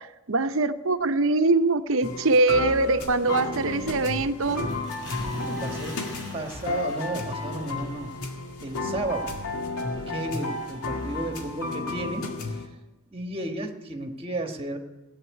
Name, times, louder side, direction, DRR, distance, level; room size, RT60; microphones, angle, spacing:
voice 1, 0.0-4.7, right 3 dB, 60° right, 10 dB, 0.8 m, -23 dB
sound 1, 2.0-12.7, left 3 dB, 80° left, 2.1 m, -33 dB
Dog bark and splash, 3.1-11.3, equal, 60° left, 5.1 m, -43 dB
voice 2, 5.2-6.0 6.3-8.1 8.6-9.3 10.1-12.3 13.1-14.8, right 2 dB, 25° right, 4 dB, 1.4 m, -33 dB
16.5 x 8.8 x 9.6 m, 1.1 s
head